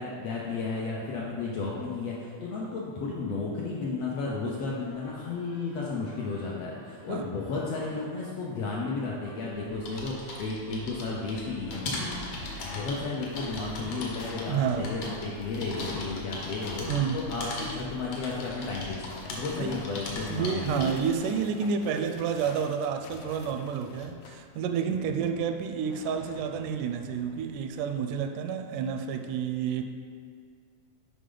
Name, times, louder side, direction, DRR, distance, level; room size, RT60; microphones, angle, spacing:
voice 1, 0.0-12.3 12.6-16.9 17.1-20.8, left 3 dB, 75° left, -4 dB, 1.5 m, -33 dB
sound 1, 4.8-17.1, left 1 dB, 5° left, 0.4 m, -52 dB
sound 2, 9.6-21.1, left 1 dB, 60° left, 1.6 m, -39 dB
sound 3, 11.4-24.7 25.1-27.8, left 5 dB, 90° left, 2.2 m, -48 dB
voice 2, 14.5-15.0 16.9-17.2 19.6-19.8 20.3-29.8, right 7 dB, 85° right, 6 dB, 2.0 m, -30 dB
8.4 x 5.1 x 3.9 m, 2.1 s
omnidirectional pair, 3.6 m